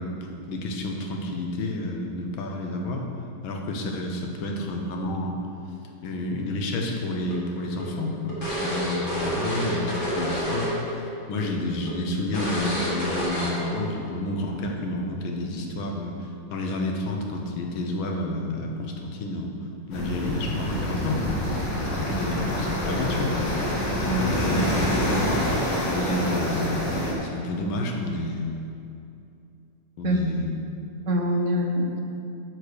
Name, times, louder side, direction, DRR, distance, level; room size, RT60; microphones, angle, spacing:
voice 1, 0.0-3.1 3.4-5.4 6.0-10.8 11.3-16.1 16.5-19.6 19.9-21.2 22.0-23.5 24.4-24.6 25.9-28.6 30.0-30.5, left 2 dB, 85° left, 2 dB, 1.7 m, -30 dB
sound 1, 7.3-10.9 11.2-11.4 11.9-12.0 12.3-13.8, equal, 25° left, 1.8 m, -29 dB
sound 2, 19.9-27.1, left 1 dB, 70° left, 2.1 m, -26 dB
voice 2, 24.0-24.6 30.0-30.2 31.1-32.0, equal, 55° right, 1 dB, 0.9 m, -25 dB
8.9 x 4.8 x 6.7 m, 2.6 s
omnidirectional pair, 2.1 m